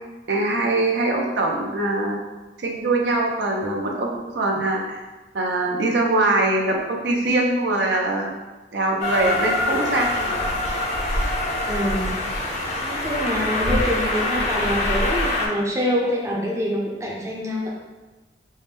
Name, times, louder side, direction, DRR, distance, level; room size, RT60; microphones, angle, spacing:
voice 1, 0.3-2.2 2.6-5.0 5.3-8.3 8.7-10.5, right 2 dB, 75° right, 0 dB, 0.6 m, -22 dB
Train, 9.0-15.5, left 2 dB, 40° left, 0.5 m, -24 dB
voice 2, 11.7-12.2 12.8-17.7, equal, 15° right, -4 dB, 0.5 m, -25 dB
4.6 x 2.1 x 3.3 m, 1.2 s
head